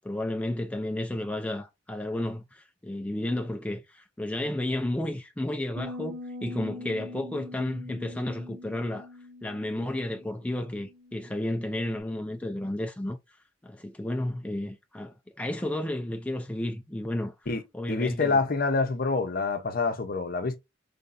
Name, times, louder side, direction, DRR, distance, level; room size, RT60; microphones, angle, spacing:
voice 1, 0.0-9.1 9.4-13.2 13.6-17.3 17.7-18.4, left 1 dB, 5° left, 0.4 m, -32 dB
sound 1, 5.8-12.0, left 2 dB, 55° right, 1.4 m, -43 dB
voice 2, 17.9-20.6, left 3 dB, 50° left, 0.7 m, -26 dB
5.4 x 3.4 x 2.5 m
head